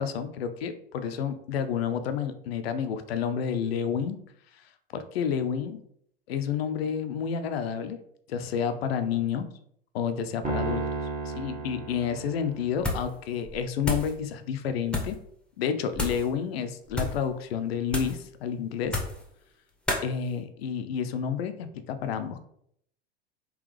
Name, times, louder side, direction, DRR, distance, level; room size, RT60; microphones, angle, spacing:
voice 1, 0.0-4.2 4.9-5.8 6.3-8.0 8.3-9.5 9.9-10.8 11.2-15.2 15.6-19.0 20.0-22.4, left 7 dB, 75° left, 10 dB, 0.5 m, -30 dB
Piano, 10.4-12.9, right 3 dB, 25° right, 1.3 m, -33 dB
sound 1, 12.8-13.2 13.4-14.1 14.9-15.2 15.9-16.3 16.9-17.2 17.9-18.2 18.8-19.3 19.9-20.1, left 2 dB, 5° left, 0.8 m, -31 dB
3.8 x 2.9 x 3.1 m, 0.69 s
hypercardioid pair, 85°, 31 cm